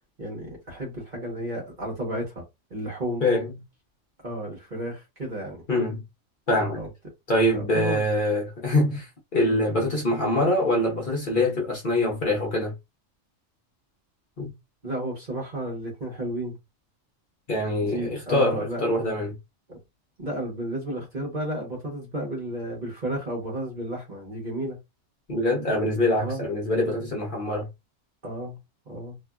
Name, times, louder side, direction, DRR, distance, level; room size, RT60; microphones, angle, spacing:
voice 1, 0.2-2.4 2.7-3.2 4.2-5.6 6.7-6.9 7.5-8.0 9.4-9.7 14.8-16.6 17.8-18.8 19.7-19.8 20.2-24.8 26.2-26.4 28.2-28.6 28.9-29.2, right 1 dB, 40° right, 1.2 m, -32 dB
voice 2, 3.2-3.5 5.7-6.0 6.5-6.8 7.3-12.7 14.4-14.5 17.5-19.4 25.3-27.7, left 1 dB, 45° left, 1.1 m, -24 dB
2.9 x 2.5 x 2.3 m
omnidirectional pair, 1.3 m